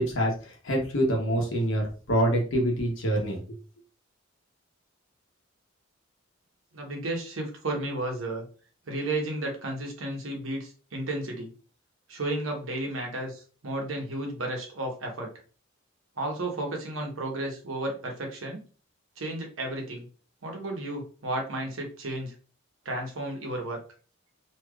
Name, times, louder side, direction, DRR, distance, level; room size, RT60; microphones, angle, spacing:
voice 1, 0.0-3.6, equal, 65° left, 0 dB, 1.0 m, -26 dB
voice 2, 6.7-8.4 8.9-11.5 12.1-15.3 16.2-18.6 19.2-20.1 20.4-22.3 22.8-23.8, right 1 dB, 70° right, 1 dB, 1.0 m, -33 dB
3.2 x 2.8 x 2.3 m, 0.38 s
head